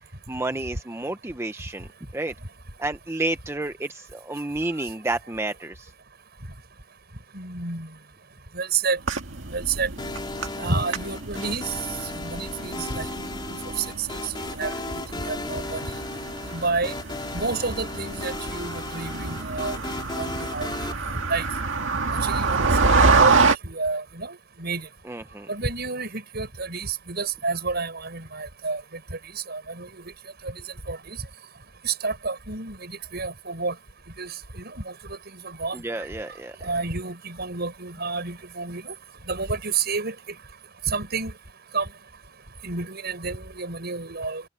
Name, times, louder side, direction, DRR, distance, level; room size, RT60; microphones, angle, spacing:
voice 1, 0.3-1.9 2.1-2.3 2.8-5.9 25.1-25.5 35.7-36.6, right 2 dB, 15° right, 0.7 m, -30 dB
voice 2, 7.3-7.9 8.5-9.0 9.5-9.9 10.6-11.7 12.2-13.1 13.5-14.1 14.6-15.8 16.5-16.9 17.3-19.8 20.1-20.7 21.3-21.5 22.2-24.9 25.5-28.8 29.5-29.9 30.9-31.0 31.8-33.7 34.2-34.3 34.6-34.9 35.4-35.8 36.6-38.9 39.3-40.1 40.9-41.3 41.7-41.9 42.6-44.4, right 4 dB, 55° right, 7.0 m, -29 dB
sound 1, 9.0-23.6, right 4 dB, 70° right, 2.0 m, -26 dB
sound 2, 10.0-20.9, left 2 dB, 25° left, 3.1 m, -35 dB
open air
head